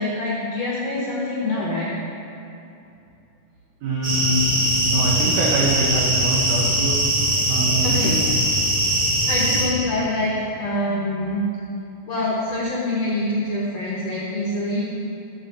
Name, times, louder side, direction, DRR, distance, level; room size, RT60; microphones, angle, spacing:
voice 1, 0.0-2.0 7.8-8.2 9.3-11.4 12.1-15.0, left 1 dB, 70° left, -5 dB, 1.6 m, -25 dB
voice 2, 3.8-4.4 4.8-7.1 7.5-8.2, right 2 dB, 70° right, -3 dB, 1.9 m, -24 dB
sound 1, 4.0-9.6, right 1 dB, 40° right, 1.3 m, -21 dB
9.8 x 6.8 x 6.8 m, 2.7 s
omnidirectional pair, 4.5 m